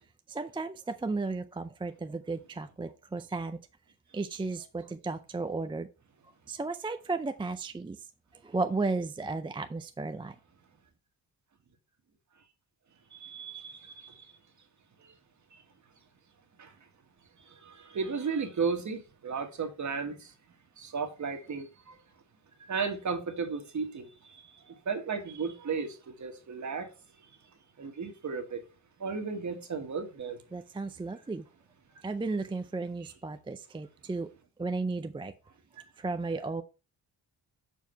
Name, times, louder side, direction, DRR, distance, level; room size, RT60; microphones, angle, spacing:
voice 1, 0.3-3.6 4.1-5.9 6.5-8.0 8.4-10.4 30.5-31.5 32.0-34.3 34.6-35.3 36.0-36.6, right 3 dB, 15° right, 0.4 m, -34 dB
voice 2, 13.1-14.3 15.0-15.1 15.5-15.6 16.6-16.7 17.4-20.3 20.8-22.0 22.7-26.9 27.8-28.6 29.0-30.4 33.0-33.1 35.8-35.9, right 5 dB, 40° right, 1.6 m, -35 dB
7.2 x 4.6 x 5.6 m
wide cardioid pair, 155°, 42 cm